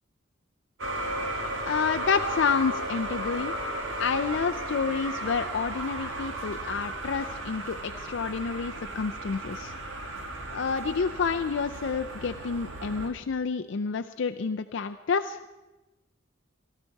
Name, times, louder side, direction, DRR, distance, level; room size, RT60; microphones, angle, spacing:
sound 1, 0.8-13.1, right 1 dB, 75° right, 1.9 m, -35 dB
voice 1, 1.7-3.5 4.0-9.7 10.5-15.4, left 5 dB, 65° left, 7 dB, 0.5 m, -29 dB
18.0 x 13.5 x 4.6 m, 1.1 s
head